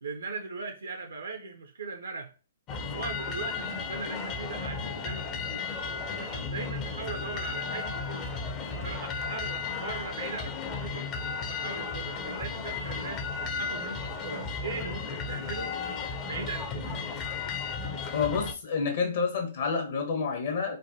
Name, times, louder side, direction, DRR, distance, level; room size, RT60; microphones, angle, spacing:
voice 1, 0.0-2.3 2.9-5.7 6.2-8.4 8.7-11.1 11.4-13.3 13.6-15.7 16.2-17.1, right 4 dB, 80° right, 5 dB, 0.4 m, -39 dB
sound 1, 2.7-18.5, left 4 dB, 30° left, 0.4 m, -34 dB
voice 2, 18.1-20.8, left 5 dB, 60° left, 3 dB, 0.9 m, -29 dB
3.2 x 2.2 x 2.7 m, 0.34 s
hypercardioid pair, 125°, 0 cm